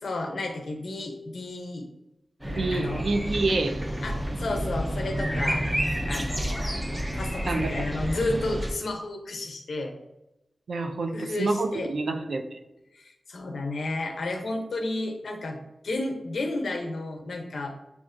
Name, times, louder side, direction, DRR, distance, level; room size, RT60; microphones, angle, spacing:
voice 1, 0.0-1.8 2.4-3.0 4.0-5.6 6.1-6.8 7.1-9.9 11.1-11.9 12.9-15.6 15.8-17.7, left 2 dB, 80° left, 3 dB, 0.7 m, -32 dB
sound 1, 2.4-8.7, equal, 15° right, 0.8 m, -29 dB
voice 2, 2.5-3.8 7.5-7.8 10.7-12.6, right 3 dB, 80° right, 4 dB, 0.5 m, -28 dB
7.0 x 2.4 x 2.5 m, 0.93 s
wide cardioid pair, 95°, 0 cm